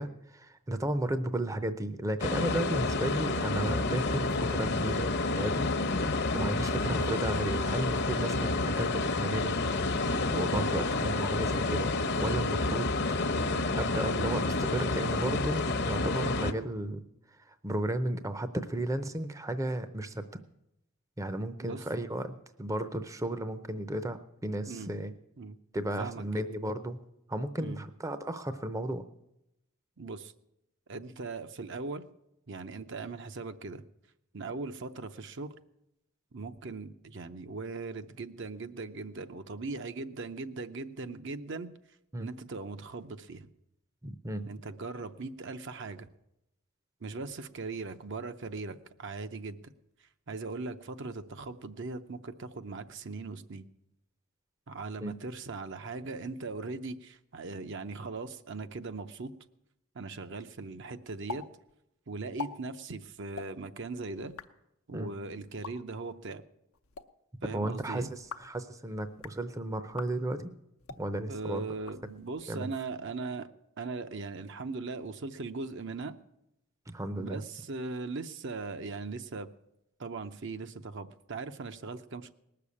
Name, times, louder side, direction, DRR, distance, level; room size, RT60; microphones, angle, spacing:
voice 1, 0.0-5.7 6.0-9.5 10.3-11.9 12.2-12.9 13.7-17.0 17.5-20.2 21.2-25.1 25.7-27.0 27.3-29.0 42.1-42.3 44.0-44.5 55.0-55.1 64.9-65.1 67.5-70.5 71.0-71.6 72.5-72.7 76.9-77.4, right 1 dB, 15° right, 11 dB, 0.6 m, -34 dB
sound 1, 2.2-16.5, left 3 dB, 50° left, 0.9 m, -29 dB
voice 2, 26.0-26.4 27.6-27.8 30.0-30.3 30.9-32.0 32.5-33.8 34.3-35.6 36.3-41.7 42.2-43.5 44.5-46.1 47.0-49.7 50.3-53.7 54.7-59.3 59.9-61.5 62.1-64.3 64.9-66.4 67.4-68.1 71.3-73.5 73.8-76.1 77.1-79.5 80.0-82.3, right 3 dB, 55° right, 9 dB, 0.7 m, -39 dB
sound 2, 61.3-61.4 61.7-61.8 62.2-62.5 63.3-63.5 64.2-64.5 65.5-65.7 66.7-67.0 68.1-68.5 69.1-69.4 69.9-70.1 70.8-71.0 71.7-72.4, left 5 dB, 80° left, 0.8 m, -42 dB
19.0 x 6.8 x 8.5 m, 0.84 s
head